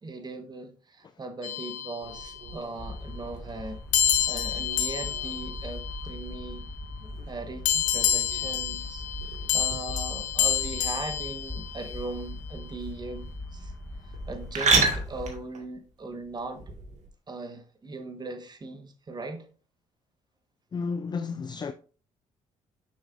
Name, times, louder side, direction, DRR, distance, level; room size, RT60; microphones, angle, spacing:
voice 1, 0.0-3.8 4.3-6.7 7.3-9.0 9.5-13.7 14.3-16.6 17.3-19.4, right 3 dB, 30° right, 1.4 m, -39 dB
sound 1, 1.4-2.6 3.9-6.6 7.6-12.2, left 10 dB, 85° left, 0.9 m, -29 dB
sound 2, 2.0-17.1, right 3 dB, 60° right, 1.9 m, -34 dB
sound 3, 2.8-15.4, left 1 dB, 10° left, 1.1 m, -40 dB
voice 2, 20.7-21.7, left 5 dB, 30° left, 0.4 m, -32 dB
7.2 x 5.9 x 2.6 m
supercardioid pair, 75°, 14 cm